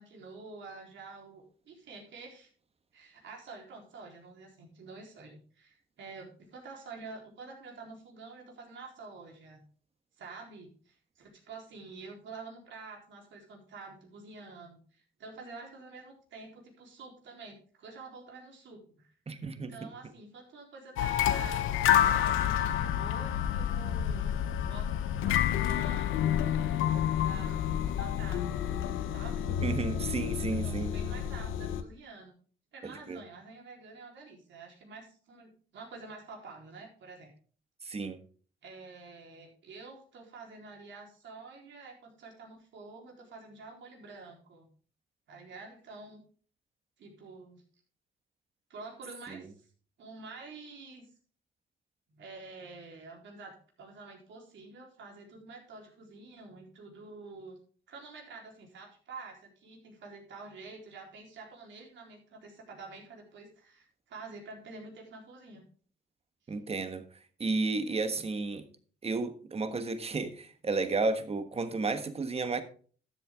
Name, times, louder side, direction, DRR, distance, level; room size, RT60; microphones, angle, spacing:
voice 1, 0.0-2.5 2.9-9.6 10.2-19.1 19.5-21.7 22.0-24.3 24.6-24.9 25.2-26.1 27.1-29.5 30.6-32.4 32.7-37.3 38.6-44.7 45.3-46.2 47.0-47.6 48.7-49.7 50.0-51.1 52.1-57.6 57.9-65.7 66.5-66.6, right 4 dB, 70° right, 4.0 m, -48 dB
voice 2, 19.3-19.7 29.6-31.0 32.8-33.2 37.8-38.2 49.3-49.4 66.5-67.0 67.4-68.7 69.0-72.6, right 3 dB, 30° right, 1.4 m, -32 dB
sound 1, 21.0-31.8, left 10 dB, 90° left, 0.9 m, -29 dB
12.5 x 8.1 x 3.7 m
cardioid pair, 90°, 20 cm